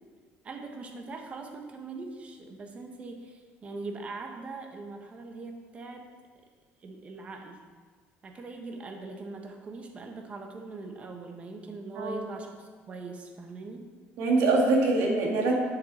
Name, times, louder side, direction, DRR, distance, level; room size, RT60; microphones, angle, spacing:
voice 1, 0.4-6.1 6.8-7.6 8.2-13.9, right 3 dB, 30° right, 3 dB, 1.1 m, -41 dB
voice 2, 11.9-12.3 14.2-15.6, right 2 dB, 70° right, -1 dB, 2.2 m, -24 dB
9.6 x 7.4 x 4.3 m, 1.5 s
cardioid pair, 150°, 5 cm